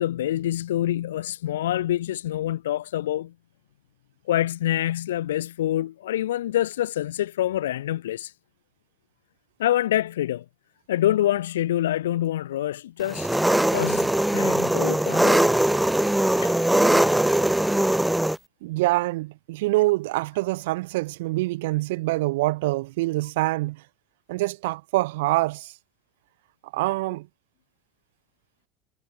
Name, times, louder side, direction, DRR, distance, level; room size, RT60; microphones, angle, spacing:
voice 1, 0.0-3.3 4.3-8.3 9.6-10.4 10.9-13.3 13.7-15.4 16.4-17.1, left 13 dB, 80° left, 0.8 m, -26 dB
Engine, 13.1-18.4, right 1 dB, 5° right, 2.5 m, -21 dB
voice 2, 18.6-23.8 24.3-25.7 26.6-27.3, right 20 dB, 75° right, 3.8 m, -25 dB
hypercardioid pair, 70°, 0 cm